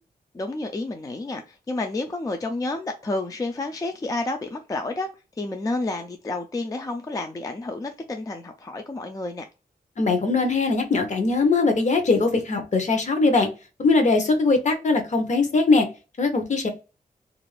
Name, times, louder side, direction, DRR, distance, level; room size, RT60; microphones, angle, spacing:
voice 1, 0.3-5.1 5.4-9.4, left 2 dB, 20° left, 0.4 m, -30 dB
voice 2, 10.0-13.5 13.8-15.9 16.2-16.7, left 3 dB, 50° left, 0.8 m, -21 dB
2.5 x 2.3 x 3.1 m
wide cardioid pair, 105°, 16 cm